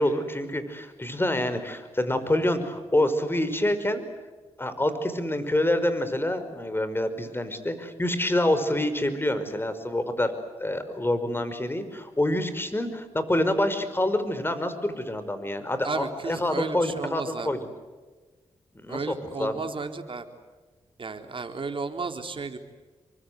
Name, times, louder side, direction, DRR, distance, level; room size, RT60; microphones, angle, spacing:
voice 1, 0.0-4.1 4.6-10.3 10.6-17.6 18.8-19.0 19.4-19.7, left 1 dB, 20° left, 10 dB, 5.3 m, -27 dB
voice 2, 15.8-17.5 18.9-20.3 21.0-22.6, right 4 dB, 50° right, 6 dB, 3.7 m, -33 dB
28.0 x 24.5 x 8.1 m, 1.3 s
cardioid pair, 70°, 12 cm